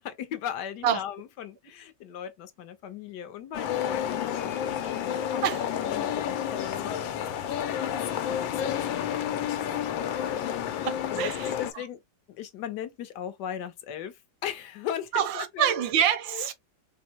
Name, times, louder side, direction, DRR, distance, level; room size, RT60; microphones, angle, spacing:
voice 1, 0.0-5.5 5.7-9.4 9.9-12.0 12.3-15.8 16.3-16.5, left 10 dB, 70° left, 1.3 m, -39 dB
sound 1, 3.5-11.7, left 9 dB, 85° left, 1.4 m, -30 dB
voice 2, 10.8-11.5 15.1-16.5, right 9 dB, 80° right, 1.4 m, -26 dB
4.2 x 2.0 x 4.4 m
omnidirectional pair, 2.1 m